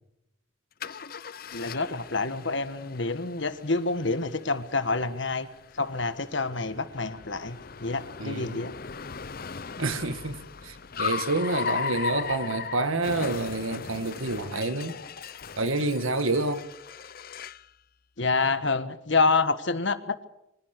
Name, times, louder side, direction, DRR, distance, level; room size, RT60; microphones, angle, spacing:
Car, 0.8-17.7, left 6 dB, 45° left, 0.7 m, -38 dB
voice 1, 1.5-5.5 5.8-8.7 18.2-20.2, left 3 dB, 60° left, 1.5 m, -27 dB
voice 2, 8.2-8.6 9.8-15.0 15.6-16.6, right 2 dB, 80° right, 2.0 m, -28 dB
25.0 x 17.0 x 6.8 m
head